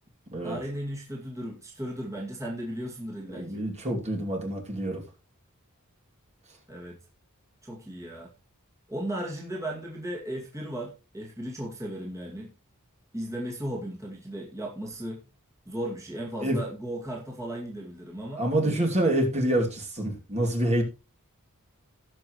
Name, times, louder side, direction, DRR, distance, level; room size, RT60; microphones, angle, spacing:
voice 1, 0.4-3.6 6.7-7.0 7.6-8.3 8.9-12.5 13.1-15.2 15.7-18.8, right 1 dB, 15° right, -2 dB, 2.4 m, -36 dB
voice 2, 3.3-5.0 16.4-16.6 18.4-20.8, right 1 dB, 30° right, 0 dB, 2.8 m, -27 dB
18.0 x 6.1 x 3.1 m, 0.29 s
head